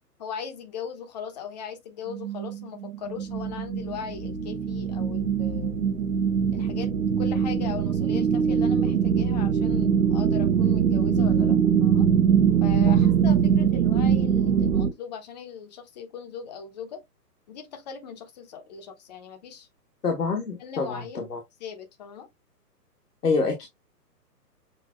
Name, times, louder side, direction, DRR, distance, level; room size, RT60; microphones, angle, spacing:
voice 1, 0.2-5.8 6.5-12.1 12.6-17.0 17.5-19.7 20.6-21.3 21.6-22.3, left 7 dB, 25° left, 0.9 m, -39 dB
sound 1, 2.1-14.9, right 7 dB, 55° right, 0.9 m, -22 dB
voice 2, 20.0-21.4 23.2-23.7, left 4 dB, 70° left, 1.4 m, -26 dB
6.9 x 2.5 x 2.4 m
figure-of-eight pair, 130°, 48 cm